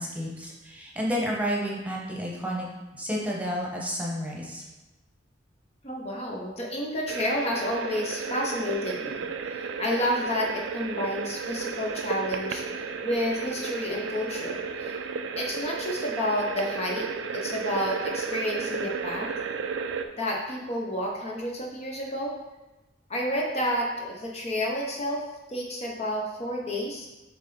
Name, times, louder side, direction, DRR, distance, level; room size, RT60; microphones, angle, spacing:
voice 1, 0.0-2.7 2.9-4.6, equal, 10° right, -3 dB, 1.1 m, -31 dB
voice 2, 5.8-15.0 15.4-17.1 17.3-19.3 20.2-22.3 23.1-25.2 25.5-27.1, left 1 dB, 35° left, -2 dB, 0.8 m, -30 dB
sound 1, 7.1-20.0, right 5 dB, 70° right, 0.4 m, -33 dB
7.9 x 3.2 x 3.9 m, 1.1 s
head